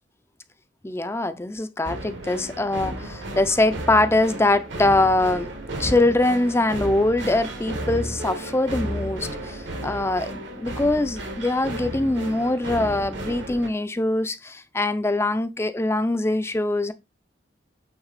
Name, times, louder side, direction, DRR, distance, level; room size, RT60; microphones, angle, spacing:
voice 1, 0.8-5.5 5.8-16.9, left 2 dB, 15° left, 0.5 m, -23 dB
sound 1, 1.8-13.7, right 1 dB, 75° right, 1.7 m, -33 dB
8.7 x 3.5 x 4.1 m
head